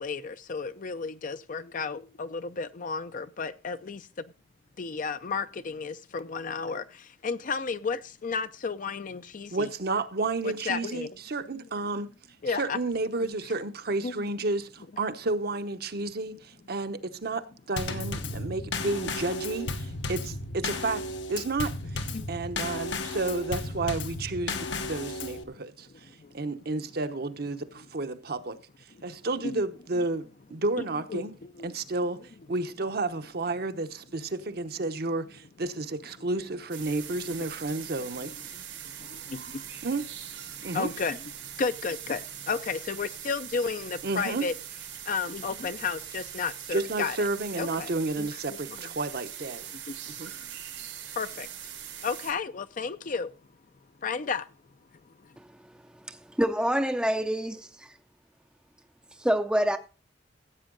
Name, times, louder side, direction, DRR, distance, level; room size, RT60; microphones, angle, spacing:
voice 1, 0.0-4.1 4.8-9.7 10.4-11.1 12.4-12.8 14.0-14.3 22.1-22.3 24.5-24.7 26.2-26.3 29.4-29.6 31.1-31.7 38.3-39.6 40.7-44.5 45.0-47.3 47.5-47.9 48.2-48.8 49.9-50.0 51.1-51.5 52.0-53.3 54.0-54.5, left 5 dB, 45° left, 0.5 m, -33 dB
voice 2, 9.5-12.1 12.5-21.0 21.3-25.9 26.3-28.6 29.0-31.3 31.6-32.2 32.5-38.3 39.8-40.1 40.6-40.9 44.0-44.4 46.7-49.7 50.1-50.3, right 2 dB, 55° right, 0.9 m, -31 dB
Drum kit / Snare drum / Bass drum, 17.8-25.4, left 2 dB, 80° left, 1.2 m, -34 dB
sound 1, 36.7-52.3, right 10 dB, 85° right, 4.0 m, -42 dB
voice 3, 56.1-57.9 59.2-59.8, equal, 5° right, 0.5 m, -26 dB
15.5 x 8.1 x 3.8 m
head